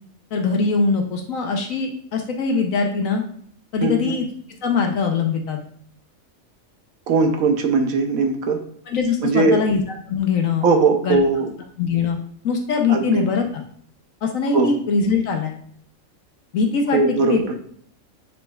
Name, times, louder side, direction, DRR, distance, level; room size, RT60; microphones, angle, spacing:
voice 1, 0.3-3.2 3.7-4.2 4.6-5.6 8.9-10.7 11.0-11.2 11.8-12.2 12.4-13.6 14.2-15.5 16.5-17.5, left 5 dB, 75° left, 3 dB, 1.2 m, -22 dB
voice 2, 3.8-4.1 7.1-8.6 9.2-9.6 10.6-11.5 12.9-13.2 14.5-14.7 16.9-17.5, right 3 dB, 85° right, 5 dB, 1.3 m, -19 dB
10.0 x 4.1 x 2.3 m, 0.62 s
omnidirectional pair, 1.4 m